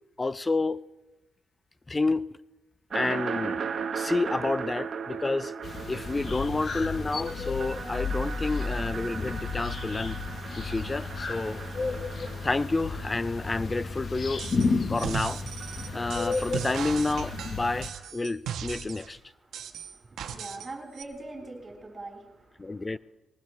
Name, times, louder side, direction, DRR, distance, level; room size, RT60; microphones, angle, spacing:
voice 1, 0.2-0.8 1.9-2.4 2.9-5.5 5.9-10.2 10.6-11.6 12.4-14.5 14.9-15.4 15.9-19.2 22.6-23.0, left 3 dB, 20° left, 0.4 m, -29 dB
sound 1, 2.9-14.6 14.9-18.1, right 6 dB, 55° right, 1.0 m, -38 dB
sound 2, 5.6-17.9, left 4 dB, 45° left, 1.1 m, -33 dB
sound 3, 14.4-14.7 15.0-19.1 19.5-20.7 21.0-21.1, right 8 dB, 85° right, 1.1 m, -37 dB
voice 2, 19.5-22.9, right 2 dB, 30° right, 4.3 m, -43 dB
20.5 x 19.5 x 3.2 m
cardioid pair, 100°, 0 cm